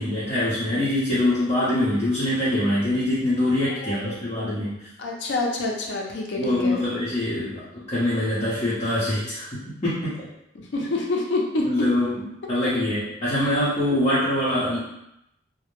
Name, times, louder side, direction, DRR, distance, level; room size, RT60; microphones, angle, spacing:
voice 1, 0.0-4.9 6.3-10.3 11.6-14.8, left 1 dB, 35° left, -11 dB, 0.7 m, -24 dB
voice 2, 3.7-4.7 5.0-6.8 10.6-11.7, left 2 dB, 75° left, -1 dB, 0.5 m, -28 dB
2.1 x 2.0 x 3.0 m, 0.82 s
head